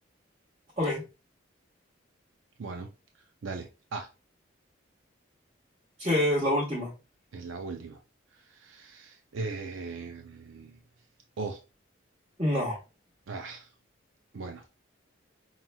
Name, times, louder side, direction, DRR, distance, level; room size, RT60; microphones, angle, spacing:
voice 1, 2.6-2.9 3.4-4.1 7.3-8.0 8.4-10.8 11.4-11.6 13.3-13.7 14.3-14.6, right 3 dB, 80° right, 0.5 m, -38 dB
voice 2, 6.0-6.9 12.4-12.8, left 1 dB, 30° right, 1.3 m, -26 dB
5.6 x 3.0 x 2.2 m
head